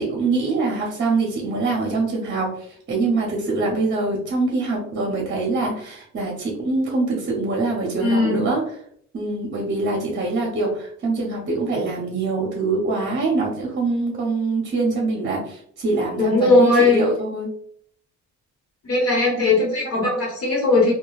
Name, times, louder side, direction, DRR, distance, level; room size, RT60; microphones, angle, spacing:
voice 1, 0.0-8.6 9.1-17.5 19.3-19.5, right 3 dB, 40° right, -1 dB, 0.8 m, -24 dB
voice 2, 8.0-8.4 16.2-17.1 18.8-20.9, left 2 dB, 55° left, -3 dB, 1.2 m, -18 dB
2.9 x 2.3 x 2.3 m, 0.63 s
cardioid pair, 90°, 30 cm